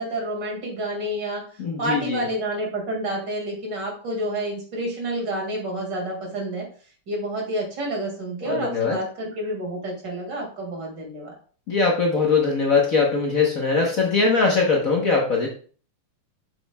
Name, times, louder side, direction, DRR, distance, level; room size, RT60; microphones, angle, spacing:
voice 1, 0.0-1.4 1.8-6.7 7.1-11.3, right 1 dB, 55° right, 0 dB, 2.7 m, -29 dB
voice 2, 1.6-2.2 8.4-9.0 11.7-15.5, left 4 dB, 45° left, -1 dB, 1.3 m, -21 dB
7.6 x 7.4 x 2.3 m, 0.42 s
omnidirectional pair, 2.4 m